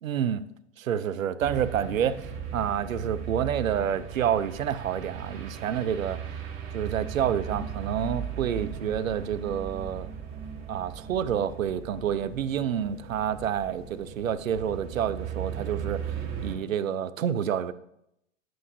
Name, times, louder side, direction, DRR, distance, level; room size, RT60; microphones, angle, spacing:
voice 1, 0.0-0.4 0.8-6.2 6.7-10.1 10.7-16.1 16.4-17.7, right 9 dB, 85° right, 14 dB, 0.5 m, -28 dB
sound 1, 1.4-16.6, right 8 dB, 35° right, 1.5 m, -37 dB
9.3 x 7.7 x 2.6 m, 0.79 s
figure-of-eight pair, 95°, 39 cm